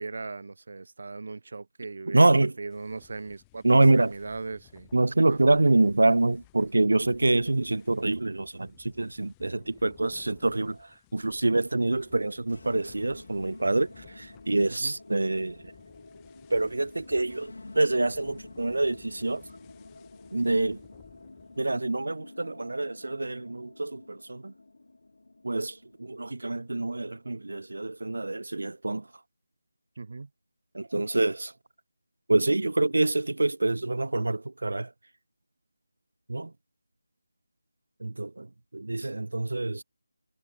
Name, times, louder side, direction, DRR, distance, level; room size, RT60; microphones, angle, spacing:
voice 1, 0.0-4.9 5.2-5.4 14.7-14.9 30.0-30.3, right 3 dB, 40° right, 0.6 m, -39 dB
voice 2, 2.1-2.5 3.6-4.1 4.9-15.6 16.5-19.4 20.3-20.8 21.6-24.5 25.4-29.0 30.7-31.5 32.3-34.9 36.3-36.5 38.0-38.5 38.7-39.8, right 2 dB, 80° right, 0.5 m, -26 dB
sound 1, 2.7-21.8, left 26 dB, 10° left, 3.1 m, -59 dB
sound 2, 12.4-28.5, left 2 dB, 65° left, 3.6 m, -50 dB
figure-of-eight pair, 180°, 0 cm